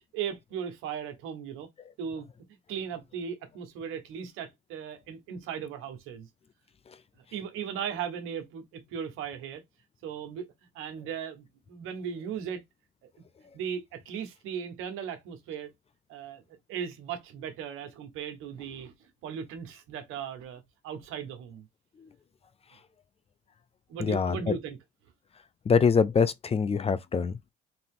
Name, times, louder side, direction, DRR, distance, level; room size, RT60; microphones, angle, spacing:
voice 1, 0.1-1.7 2.0-6.3 7.3-9.6 10.0-10.5 10.7-12.6 13.5-15.7 16.1-16.4 16.7-18.9 19.2-21.7 23.9-24.8, right 7 dB, 85° right, 1.3 m, -37 dB
voice 2, 24.0-24.4 25.7-27.5, left 5 dB, 30° left, 0.5 m, -24 dB
4.0 x 2.8 x 3.7 m
cardioid pair, 95°, 21 cm